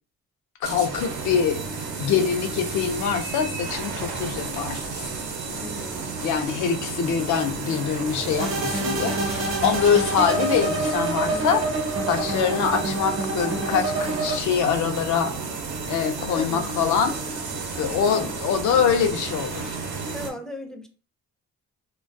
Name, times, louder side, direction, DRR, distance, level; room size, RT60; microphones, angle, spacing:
voice 1, 0.6-1.6 2.0-5.1 6.2-11.6 12.1-15.3 15.9-17.2 17.8-19.8, left 7 dB, 75° left, 7 dB, 0.5 m, -24 dB
sound 1, 0.6-20.3, right 4 dB, 75° right, 0.7 m, -32 dB
voice 2, 5.6-6.2 11.3-11.6 16.2-16.7 18.0-18.3 20.1-20.9, left 1 dB, ahead, 4 dB, 0.4 m, -37 dB
sound 2, 8.4-14.4, right 2 dB, 45° right, 0.8 m, -27 dB
2.3 x 2.2 x 2.5 m, 0.40 s
cardioid pair, 90°, 30 cm